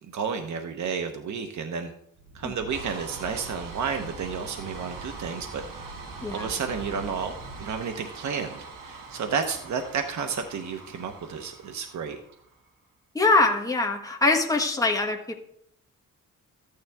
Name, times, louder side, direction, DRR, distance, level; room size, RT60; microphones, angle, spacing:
voice 1, 0.1-1.9 2.3-5.6 6.3-7.3 7.6-12.2, right 6 dB, 60° right, 6 dB, 1.1 m, -31 dB
sound 1, 2.2-12.7, right 3 dB, 75° right, 2.1 m, -42 dB
voice 2, 6.2-6.5 13.1-15.4, left 3 dB, 10° left, 1 dB, 1.6 m, -23 dB
13.5 x 9.6 x 3.6 m, 0.71 s
cardioid pair, 115°, 33 cm